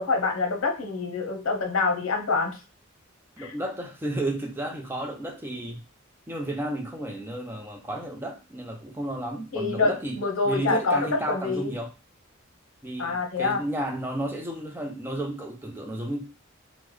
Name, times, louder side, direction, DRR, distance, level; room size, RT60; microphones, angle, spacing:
voice 1, 0.0-2.6 3.4-3.5 9.5-11.0 11.3-11.7 13.0-13.6, left 4 dB, 75° left, 4 dB, 0.7 m, -26 dB
voice 2, 3.4-5.8 6.3-10.2 10.4-11.9 12.8-16.2, right 1 dB, 10° right, 2 dB, 0.4 m, -32 dB
3.4 x 2.0 x 3.1 m, 0.31 s
head